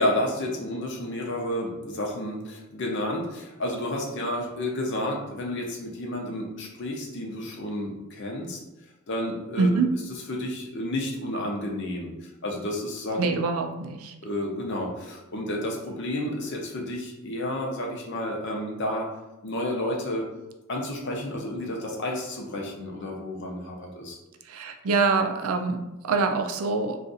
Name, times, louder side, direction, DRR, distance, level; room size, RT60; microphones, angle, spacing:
voice 1, 0.0-8.6 9.1-9.7 10.3-13.3 14.2-19.1 19.4-20.3 20.7-24.2, left 1 dB, 55° left, 0 dB, 0.7 m, -31 dB
voice 2, 9.6-9.9 13.2-14.2 24.4-27.0, right 4 dB, 80° right, 5 dB, 0.4 m, -25 dB
2.5 x 2.4 x 3.9 m, 1.0 s
head